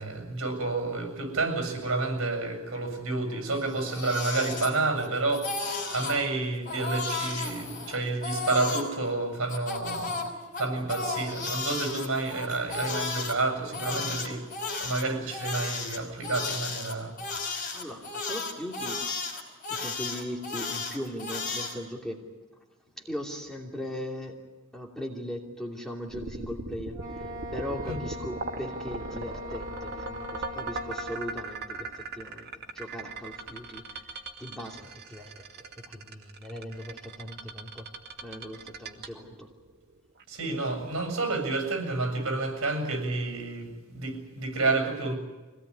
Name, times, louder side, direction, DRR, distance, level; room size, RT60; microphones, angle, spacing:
voice 1, 0.0-5.5 5.9-10.2 10.6-14.4 14.8-17.1 27.9-28.0 40.3-45.1, right 3 dB, 75° right, 5 dB, 7.4 m, -29 dB
Crying sobbing, 3.6-5.1 5.3-6.2 6.6-8.9 9.5-13.3 13.7-21.7, left 4 dB, 40° left, 5.5 m, -34 dB
voice 2, 17.7-19.0 19.7-22.3 23.0-24.4 24.7-33.8 34.1-35.5 35.9-37.9 38.2-39.5, equal, 5° left, 0 dB, 2.8 m, -39 dB
sound 1, 26.1-40.2, right 3 dB, 50° right, 2.4 m, -39 dB
Wind instrument woodwind instrument, 26.9-31.5, left 1 dB, 20° right, 3.5 m, -41 dB
24.5 x 18.0 x 9.9 m, 1.2 s
head